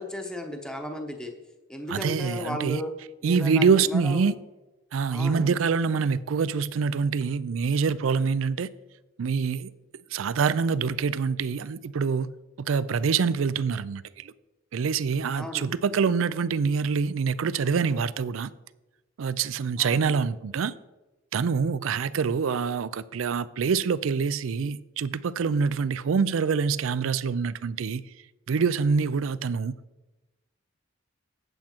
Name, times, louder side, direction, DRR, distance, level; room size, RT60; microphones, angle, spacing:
voice 1, 0.0-1.3 1.7-2.9 3.2-4.3 5.1-5.6 15.3-15.7 19.8-20.2, left 1 dB, 5° left, 0.8 m, -35 dB
voice 2, 1.9-2.8 3.2-4.4 4.9-8.7 9.2-9.7 10.1-12.3 12.6-14.3 14.7-18.5 19.2-20.7 21.3-28.1 28.5-29.8, right 5 dB, 90° right, 0.4 m, -25 dB
8.6 x 8.2 x 4.4 m
head